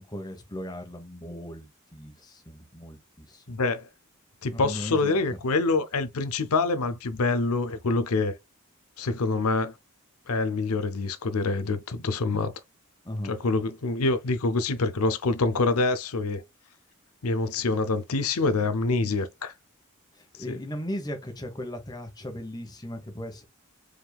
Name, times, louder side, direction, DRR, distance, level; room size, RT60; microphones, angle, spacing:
voice 1, 0.0-3.4 4.5-5.4 13.0-13.3 20.1-23.4, left 1 dB, 20° left, 1.0 m, -37 dB
voice 2, 3.5-3.9 4.4-8.4 9.0-9.7 10.3-12.5 13.2-16.4 17.2-19.5 20.5-20.6, left 3 dB, 90° left, 0.7 m, -26 dB
4.9 x 3.6 x 2.3 m
head